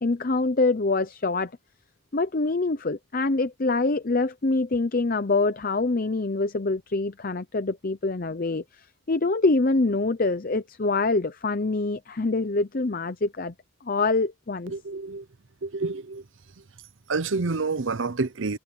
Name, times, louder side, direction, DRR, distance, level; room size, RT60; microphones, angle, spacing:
voice 1, 0.0-1.5 2.1-13.5 13.8-14.7, left 3 dB, 45° left, 0.7 m, -25 dB
voice 2, 14.7-15.3 15.6-16.2 17.1-18.6, right 3 dB, 65° right, 0.8 m, -28 dB
head